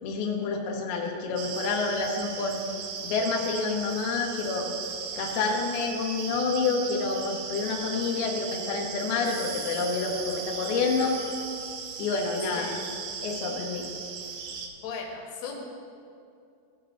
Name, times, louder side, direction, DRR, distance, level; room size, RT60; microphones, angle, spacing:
voice 1, 0.0-2.6 3.0-4.7 5.1-11.2 12.0-12.7 13.2-13.9, left 4 dB, 90° left, 0 dB, 2.1 m, -28 dB
sound 1, 1.4-14.7, right 6 dB, 90° right, 3.3 m, -37 dB
sound 2, 9.2-12.8, right 1 dB, 55° right, 2.1 m, -48 dB
voice 2, 14.8-15.6, left 5 dB, 70° left, -1 dB, 3.1 m, -37 dB
16.0 x 8.9 x 2.6 m, 2.5 s
omnidirectional pair, 5.9 m